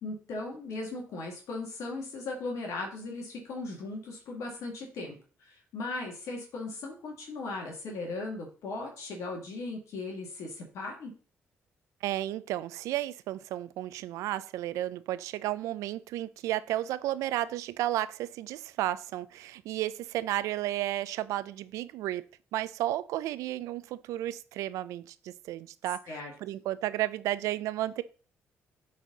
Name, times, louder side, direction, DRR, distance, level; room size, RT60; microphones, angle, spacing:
voice 1, 0.0-11.1 26.1-26.3, left 3 dB, 75° left, 1.9 m, -38 dB
voice 2, 12.0-22.2 22.5-28.0, right 14 dB, 80° right, 0.4 m, -33 dB
9.3 x 4.2 x 3.9 m
supercardioid pair, 60°, 5 cm